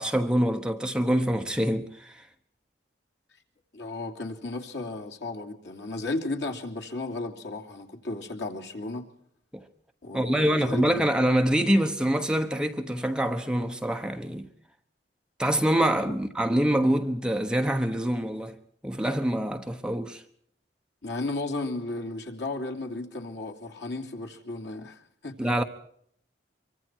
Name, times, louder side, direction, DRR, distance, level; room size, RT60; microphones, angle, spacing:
voice 1, 0.0-2.2 9.5-9.6 10.1-14.5 15.4-18.6 18.8-20.2 25.4-25.6, right 1 dB, 5° right, 1.1 m, -25 dB
voice 2, 3.7-9.0 10.0-11.0 21.0-25.6, left 2 dB, 70° left, 2.9 m, -34 dB
25.0 x 23.5 x 4.6 m
head